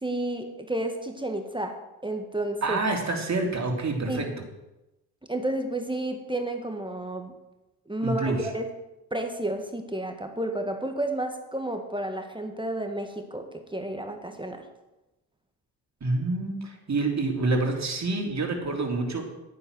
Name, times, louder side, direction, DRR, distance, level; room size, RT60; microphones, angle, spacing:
voice 1, 0.0-1.8 2.0-2.8 4.1-4.3 5.3-7.3 7.9-8.7 9.1-14.7, right 1 dB, 10° right, 5 dB, 1.7 m, -31 dB
voice 2, 2.6-4.3 8.0-8.5 16.0-19.3, right 2 dB, 35° right, 1 dB, 3.3 m, -27 dB
10.0 x 9.9 x 6.1 m, 0.98 s
hypercardioid pair, 50°, 50 cm